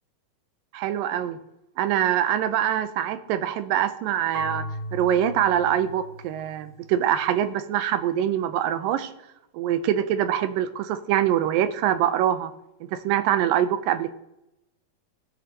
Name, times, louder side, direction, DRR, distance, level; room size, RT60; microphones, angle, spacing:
voice 1, 0.7-1.4 1.8-4.7 4.9-9.1 9.5-12.5 12.9-14.1, right 10 dB, 90° right, 10 dB, 2.4 m, -24 dB
Marimba xylophone / Wood, 4.3-7.2, right 1 dB, 50° right, 1.7 m, -36 dB
19.5 x 6.8 x 2.9 m, 0.88 s
omnidirectional pair, 3.9 m